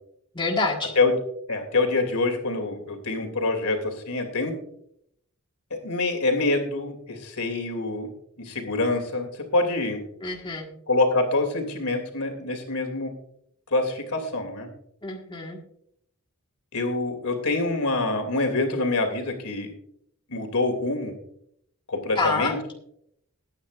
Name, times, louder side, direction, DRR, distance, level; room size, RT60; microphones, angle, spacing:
voice 1, 0.3-0.9 10.2-10.7 15.0-15.6 22.2-22.6, left 3 dB, 20° left, 0 dB, 1.6 m, -27 dB
voice 2, 1.5-4.6 5.8-8.1 8.4-9.3 9.5-10.0 10.9-13.1 13.7-14.7 16.7-19.7 20.3-21.1 21.9-22.6, left 2 dB, 75° left, 4 dB, 2.7 m, -25 dB
20.5 x 9.5 x 2.5 m, 0.73 s
head